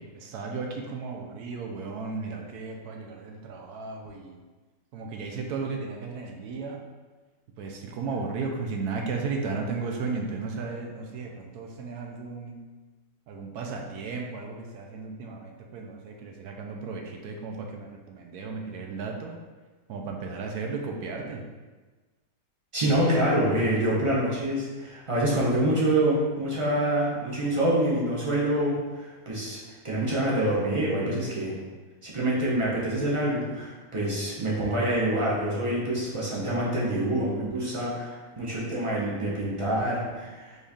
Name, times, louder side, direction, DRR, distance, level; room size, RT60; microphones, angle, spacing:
voice 1, 0.0-4.4 4.9-6.8 7.6-12.6 13.3-19.3 19.9-21.4, right 4 dB, 70° right, 2 dB, 1.0 m, -35 dB
voice 2, 22.7-31.5 32.0-40.5, right 1 dB, 35° right, -6 dB, 0.5 m, -26 dB
4.4 x 3.2 x 3.5 m, 1.3 s
omnidirectional pair, 1.9 m